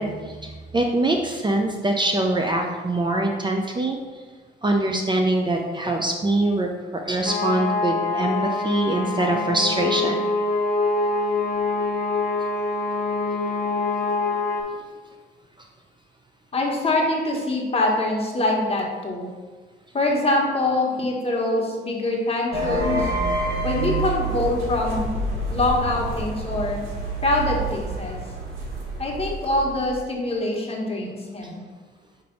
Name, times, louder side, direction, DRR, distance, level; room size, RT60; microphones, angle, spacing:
voice 1, 0.0-4.0 4.6-10.3, right 2 dB, 25° right, 2 dB, 0.6 m, -23 dB
sound 1, 7.3-14.6, left 3 dB, 45° left, 1.1 m, -25 dB
voice 2, 16.5-19.3 19.9-23.1 23.6-25.1 25.5-26.8 27.2-28.2 29.0-31.6, left 2 dB, 30° left, -1 dB, 1.5 m, -24 dB
sound 2, 22.5-29.9, right 2 dB, 90° right, 1.5 m, -28 dB
5.8 x 3.4 x 5.2 m, 1.4 s
cardioid pair, 90°, 20 cm